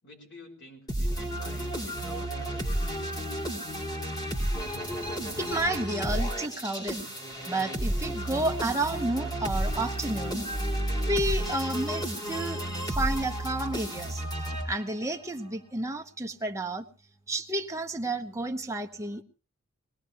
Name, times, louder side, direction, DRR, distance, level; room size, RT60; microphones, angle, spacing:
voice 1, 0.0-2.8, equal, 55° left, 3 dB, 5.0 m, -48 dB
sound 1, 0.9-15.1, right 1 dB, 20° left, 2.9 m, -32 dB
voice 2, 5.4-7.0 7.5-10.5 11.0-14.2 14.6-16.8 17.3-19.2, right 2 dB, 15° right, 3 dB, 1.1 m, -31 dB
22.5 x 18.0 x 3.0 m, 0.34 s
head